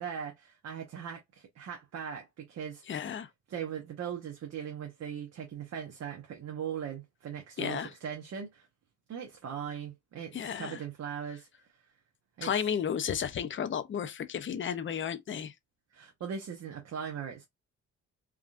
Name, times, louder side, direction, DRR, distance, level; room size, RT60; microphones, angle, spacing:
voice 1, 0.0-3.0 3.5-8.7 9.1-11.5 12.4-12.5 15.9-17.4, right 8 dB, 60° right, 0.9 m, -39 dB
voice 2, 2.9-3.3 7.6-7.9 10.3-10.8 12.4-15.5, left 8 dB, 40° left, 0.6 m, -33 dB
3.6 x 2.3 x 2.5 m
cardioid pair, 90°, 30 cm